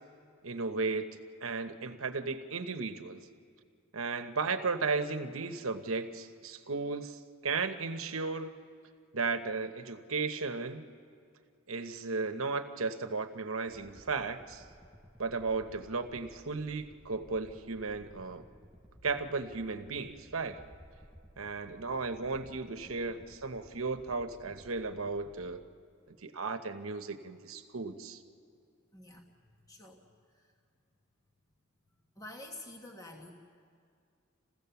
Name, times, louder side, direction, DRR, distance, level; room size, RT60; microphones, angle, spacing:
voice 1, 0.4-3.2 3.9-8.5 9.1-10.8 11.7-14.6 15.2-18.4 19.0-20.6 21.4-25.6 26.1-28.2, right 4 dB, 70° right, 8 dB, 1.1 m, -35 dB
sound 1, 13.7-25.5, equal, 5° right, 0.6 m, -57 dB
voice 2, 28.9-29.2 29.7-30.0 30.3-30.4 32.2-33.3, left 1 dB, 15° left, 1 dB, 1.3 m, -47 dB
29.5 x 15.5 x 7.0 m, 2.4 s
head